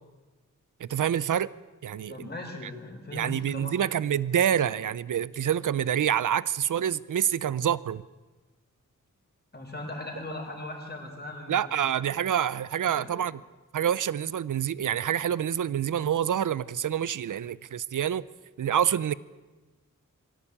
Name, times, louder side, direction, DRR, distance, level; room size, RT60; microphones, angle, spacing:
voice 1, 0.8-1.5 1.8-2.1 3.1-8.0 11.5-13.4 13.7-18.2 18.6-19.1, right 9 dB, 75° right, 0.6 m, -27 dB
voice 2, 2.1-4.1 9.5-11.6 12.8-13.1, left 2 dB, 30° left, 5.2 m, -39 dB
23.5 x 16.0 x 8.7 m
wide cardioid pair, 150°, 32 cm